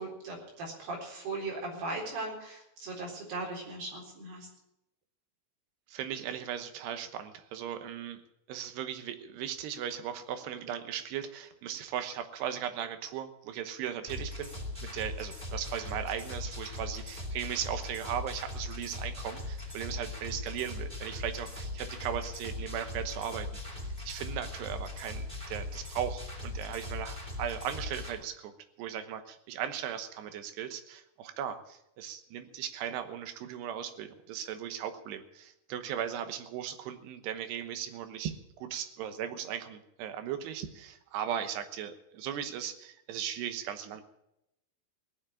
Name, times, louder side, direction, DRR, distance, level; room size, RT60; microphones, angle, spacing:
voice 1, 0.0-4.5, right 2 dB, 70° right, -2 dB, 6.0 m, -38 dB
voice 2, 5.9-8.2 8.5-14.5 14.8-23.5 23.8-28.5 28.8-44.0, right 9 dB, 90° right, 9 dB, 3.2 m, -37 dB
sound 1, 14.1-28.1, left 2 dB, 15° right, 2.5 m, -39 dB
18.5 x 7.3 x 8.8 m, 0.84 s
omnidirectional pair, 4.6 m